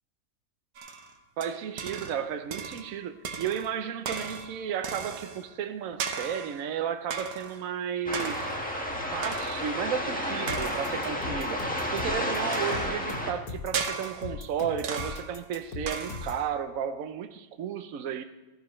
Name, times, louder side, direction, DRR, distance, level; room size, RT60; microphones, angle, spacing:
sound 1, 0.8-2.2 2.5-3.0 3.2-5.5 6.0-6.7 7.1-7.7 8.1-8.7 9.2-9.8 10.5-11.1 12.5-13.1 13.7-14.4 14.8-15.4 15.9-16.5, right 6 dB, 90° right, 1.5 m, -36 dB
voice 1, 1.4-8.5 9.1-11.6 11.9-18.2, right 8 dB, 70° right, 1.1 m, -33 dB
sound 2, 8.1-13.3, left 1 dB, 5° left, 1.3 m, -31 dB
sound 3, 10.5-16.5, left 4 dB, 90° left, 1.9 m, -39 dB
14.0 x 10.5 x 3.1 m
omnidirectional pair, 1.6 m